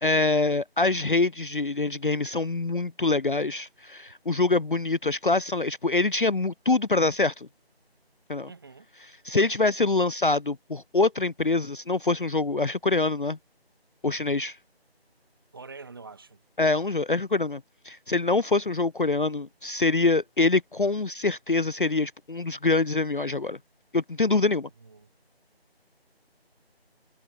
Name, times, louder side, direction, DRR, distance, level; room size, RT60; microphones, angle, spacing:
voice 1, 0.0-7.5 8.3-8.5 9.2-13.4 14.0-14.6 16.6-17.6 17.9-23.6 23.9-24.7, left 3 dB, 55° left, 0.5 m, -25 dB
voice 2, 8.5-8.9 15.5-16.4 24.8-25.1, right 4 dB, 20° right, 6.9 m, -45 dB
figure-of-eight pair, 175°, 32 cm